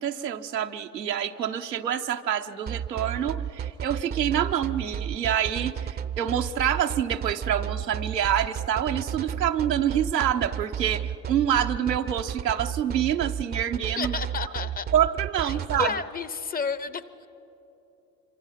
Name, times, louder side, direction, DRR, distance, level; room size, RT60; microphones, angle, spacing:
voice 1, 0.0-14.2 14.9-15.9, right 9 dB, 85° right, 6 dB, 1.0 m, -27 dB
sound 1, 2.7-15.9, right 9 dB, 20° right, 0.6 m, -32 dB
voice 2, 14.0-14.9 15.4-17.0, left 5 dB, 20° left, 15 dB, 0.7 m, -31 dB
26.5 x 24.5 x 5.8 m, 2.9 s
figure-of-eight pair, 80°, 48 cm